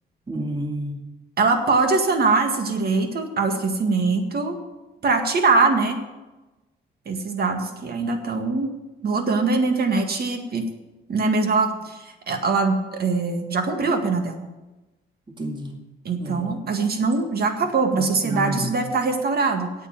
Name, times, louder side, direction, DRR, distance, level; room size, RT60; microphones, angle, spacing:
voice 1, 0.3-1.0 15.3-15.8 16.2-16.5 18.2-18.8, equal, 25° right, 2 dB, 2.1 m, -30 dB
voice 2, 1.4-4.6 5.0-6.0 7.1-8.7 9.0-10.6 11.1-14.4 16.1-19.7, right 3 dB, 50° right, 5 dB, 1.9 m, -22 dB
8.8 x 8.5 x 9.2 m, 1.1 s
cardioid pair, 90°, 20 cm